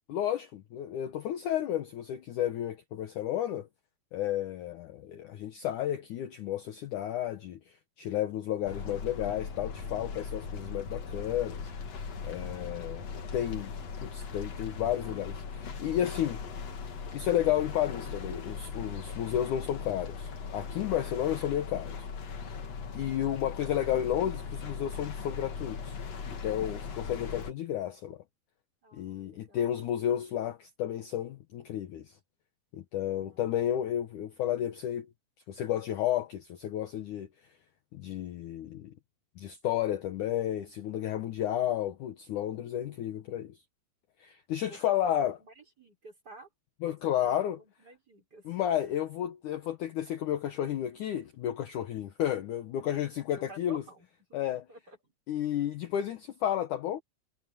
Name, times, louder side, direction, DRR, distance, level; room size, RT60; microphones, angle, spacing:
voice 1, 0.1-3.7 4.1-7.6 8.0-11.6 12.2-13.0 13.3-13.7 14.0-16.4 17.1-22.1 22.9-26.0 26.4-28.2 28.9-32.2 32.7-35.1 35.5-37.3 37.9-38.9 39.4-43.6 44.2-45.4 46.8-47.6 48.5-53.8 54.3-54.6 55.3-57.0, left 11 dB, 75° left, 1.9 m, -32 dB
sound 1, 8.6-27.5, left 5 dB, 45° left, 2.7 m, -39 dB
voice 2, 28.8-30.2 33.1-34.2 44.6-46.5 46.8-48.6 53.4-54.4 54.7-55.1, equal, 20° right, 6.1 m, -53 dB
omnidirectional pair, 5.0 m